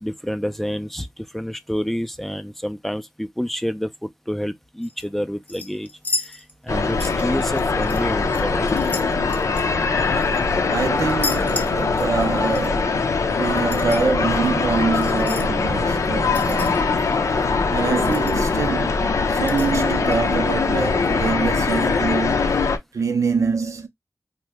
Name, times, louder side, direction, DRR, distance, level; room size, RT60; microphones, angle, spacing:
voice 1, 0.0-5.9 6.2-8.9, equal, 5° left, 0.4 m, -28 dB
sound 1, 4.8-5.0 5.5-6.7 7.0-8.0 8.3-10.4 11.0-12.3 12.5-12.7 13.5-14.0 15.0-15.5 16.3-17.0 17.4-17.5 17.7-17.8 18.0-18.7 19.4-20.2 20.9-21.0, left 3 dB, 30° left, 0.8 m, -33 dB
sound 2, 6.7-22.8, left 4 dB, 90° left, 0.5 m, -22 dB
voice 2, 10.7-16.9 17.7-22.4 22.9-23.9, right 5 dB, 90° right, 0.6 m, -25 dB
2.8 x 2.1 x 3.3 m
wide cardioid pair, 60°, 5 cm